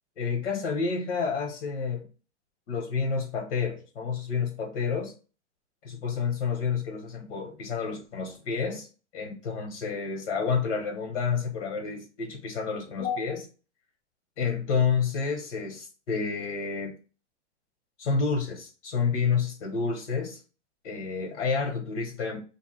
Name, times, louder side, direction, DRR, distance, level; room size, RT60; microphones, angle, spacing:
voice 1, 0.2-2.1 2.7-5.1 5.8-8.9 9.1-13.5 14.4-16.9 18.0-20.4 20.8-22.4, left 5 dB, 80° left, 1.2 m, -29 dB
3.5 x 2.6 x 4.1 m
supercardioid pair, 170°, 34 cm